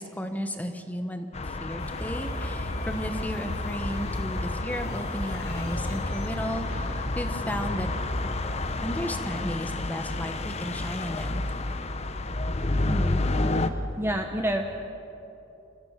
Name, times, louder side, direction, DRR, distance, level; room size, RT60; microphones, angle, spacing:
voice 1, 0.0-7.9 8.8-11.4, equal, 10° left, 6 dB, 1.3 m, -34 dB
sound 1, 1.3-13.7, left 2 dB, 35° left, 0.8 m, -30 dB
sound 2, 1.8-8.9, equal, 60° left, 4.2 m, -36 dB
voice 2, 12.8-13.2 14.0-14.7, equal, 10° right, 3 dB, 0.9 m, -29 dB
29.0 x 15.5 x 6.6 m, 3.0 s
head